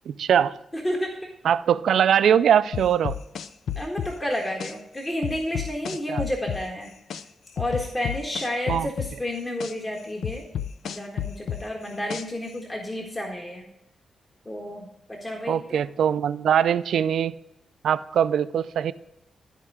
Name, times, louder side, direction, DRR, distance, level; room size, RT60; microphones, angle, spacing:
voice 1, 0.1-0.6 1.4-3.2 6.1-6.2 8.7-8.9 15.5-17.3 17.8-18.9, right 9 dB, 80° right, 14 dB, 0.4 m, -21 dB
voice 2, 0.7-1.3 3.7-6.9 7.6-10.4 10.8-13.7 14.4-15.8, left 1 dB, 25° left, 1 dB, 1.5 m, -31 dB
sound 1, 2.7-4.7 5.2-7.2 7.6-9.7 10.2-12.5, left 9 dB, 85° left, 0.5 m, -31 dB
13.0 x 4.5 x 4.8 m, 0.84 s
cardioid pair, 80°, 0 cm